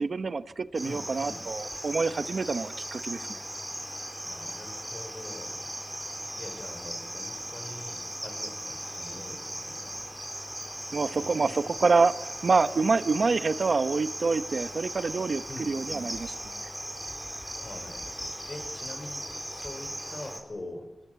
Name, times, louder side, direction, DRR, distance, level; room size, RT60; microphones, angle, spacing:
voice 1, 0.0-3.4 10.9-16.3, right 4 dB, 50° right, 11 dB, 0.9 m, -27 dB
Cricket, 0.7-20.4, equal, 5° right, 4.2 m, -38 dB
voice 2, 0.8-1.4 4.2-5.6 6.4-10.1 11.1-11.8 15.5-16.1 17.5-18.1 18.5-21.0, left 1 dB, 35° left, 6 dB, 5.2 m, -44 dB
27.0 x 19.0 x 8.2 m, 0.98 s
wide cardioid pair, 155°, 0 cm